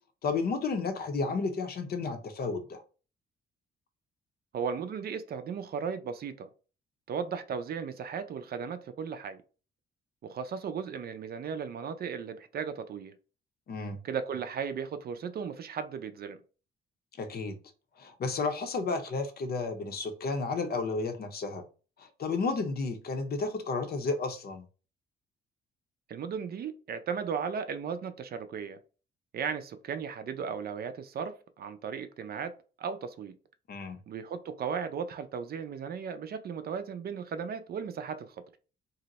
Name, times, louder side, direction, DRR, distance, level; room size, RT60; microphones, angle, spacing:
voice 1, 0.2-2.8 13.7-14.0 17.2-17.6 18.0-21.6 22.0-24.7 33.7-34.0, left 4 dB, 50° left, 0.7 m, -32 dB
voice 2, 4.5-6.5 7.1-9.4 10.2-13.1 14.0-16.4 26.1-28.8 29.3-33.4 34.1-38.3, right 6 dB, 50° right, 0.5 m, -36 dB
2.7 x 2.0 x 4.0 m
cardioid pair, 90°, 20 cm